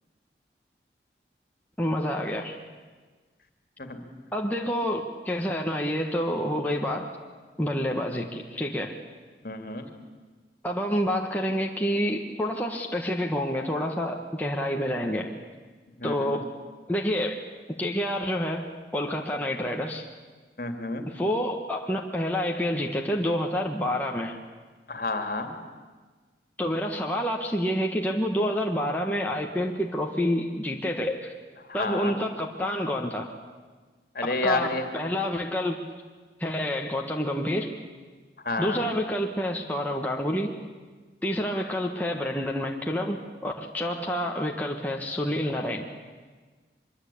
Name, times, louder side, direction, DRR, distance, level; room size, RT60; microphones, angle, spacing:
voice 1, 1.8-2.6 4.3-7.1 7.6-8.9 10.6-15.3 16.0-16.5 16.9-17.4 17.8-20.1 21.1-24.3 26.6-31.3 31.7-33.3 34.2-35.8 36.4-37.7 38.6-40.5 41.2-45.9, equal, 10° left, 0 dB, 1.5 m, -28 dB
voice 2, 9.4-9.9 16.0-16.4 20.6-21.1 24.9-25.5 31.7-32.1 34.1-34.9 38.4-38.9, left 2 dB, 55° left, 6 dB, 2.7 m, -30 dB
24.5 x 22.5 x 8.6 m, 1.4 s
head